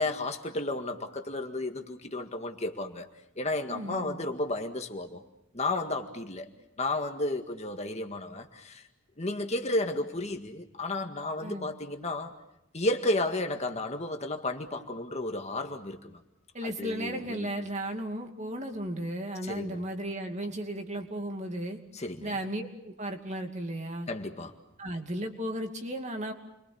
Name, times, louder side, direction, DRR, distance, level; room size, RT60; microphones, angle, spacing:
voice 1, 0.0-3.1 3.4-5.2 5.5-6.5 6.8-8.8 9.2-12.3 12.7-16.2 16.6-17.5 19.4-19.8 21.9-22.4 24.1-24.5, left 2 dB, 30° left, 5 dB, 1.9 m, -32 dB
voice 2, 3.7-4.2 11.4-11.7 16.5-21.8 22.2-24.1 24.8-26.3, right 1 dB, 35° right, 4 dB, 2.6 m, -35 dB
29.0 x 23.5 x 7.1 m, 0.86 s
head